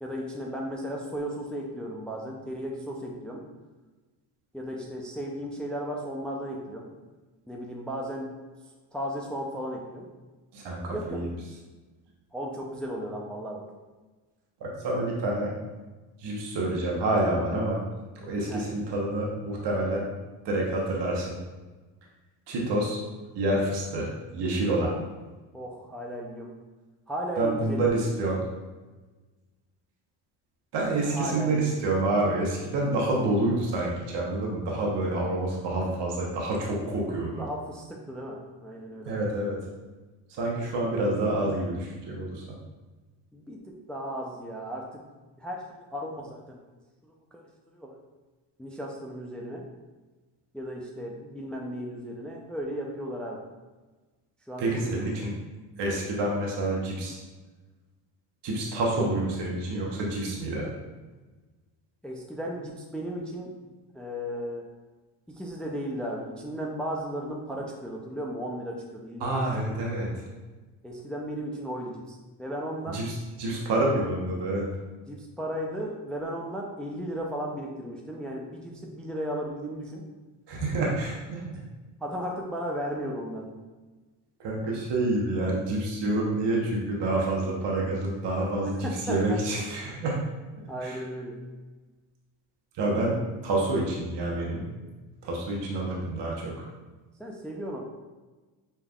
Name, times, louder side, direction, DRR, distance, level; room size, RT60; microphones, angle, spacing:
voice 1, 0.0-3.4 4.5-6.9 7.5-8.3 8.9-10.1 10.9-11.3 12.3-13.7 18.5-18.6 24.8-25.0 25.5-26.5 27.1-27.9 31.0-31.9 37.4-39.1 43.3-45.0 45.4-46.6 47.0-48.0 48.6-49.7 50.5-53.4 54.5-55.0 62.0-63.5 63.9-64.7 65.3-69.8 70.8-73.0 75.1-80.0 82.0-83.6 88.6-89.4 90.7-91.4 97.2-97.8, equal, ahead, -1 dB, 0.5 m, -35 dB
voice 2, 10.5-11.3 14.6-15.5 16.2-17.8 18.2-20.1 20.4-21.3 22.5-23.0 23.3-24.9 27.4-28.4 30.7-37.4 39.1-39.6 40.4-42.4 54.6-55.3 55.8-57.2 58.4-60.7 69.2-70.1 72.9-74.7 80.5-81.4 84.4-90.2 90.8-91.0 92.8-93.2 93.4-94.7 95.2-96.6, right 2 dB, 60° right, -2 dB, 1.1 m, -28 dB
5.5 x 3.4 x 2.4 m, 1.3 s
supercardioid pair, 85°, 46 cm